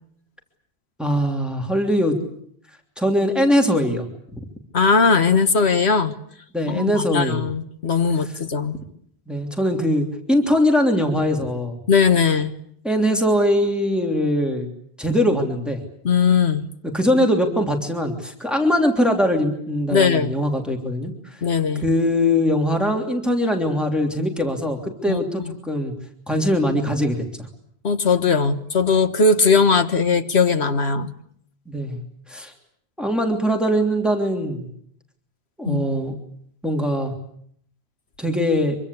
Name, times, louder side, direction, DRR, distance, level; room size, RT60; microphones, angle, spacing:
voice 1, 1.0-2.2 3.0-4.4 6.5-7.4 9.3-11.8 12.8-14.7 15.0-15.8 16.9-21.1 21.8-25.9 26.3-27.2 31.7-32.0 32.3-32.5 33.0-34.7 35.6-36.1 36.6-37.1 38.2-38.8, equal, ahead, 3 dB, 3.2 m, -21 dB
voice 2, 4.7-6.1 6.7-8.8 11.9-12.5 16.0-16.7 19.9-20.3 21.4-21.9 25.1-25.5 27.8-31.1 35.7-35.8, left 5 dB, 90° left, 9 dB, 1.8 m, -19 dB
25.5 x 24.0 x 8.4 m, 0.67 s
omnidirectional pair, 1.1 m